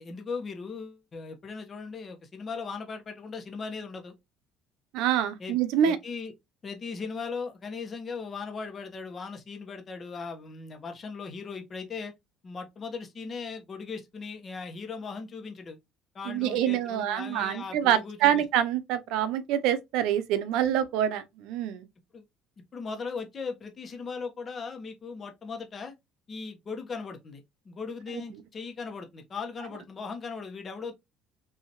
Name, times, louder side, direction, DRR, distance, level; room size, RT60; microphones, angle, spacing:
voice 1, 0.0-4.1 5.4-5.6 5.8-6.3 6.6-12.1 12.4-15.8 16.1-18.4 22.1-22.2 22.7-25.9 26.3-30.9, left 4 dB, 30° left, 1.1 m, -38 dB
voice 2, 4.9-6.0 16.3-21.9, right 10 dB, 80° right, 0.6 m, -26 dB
5.4 x 2.8 x 3.0 m
cardioid pair, 120°, 0 cm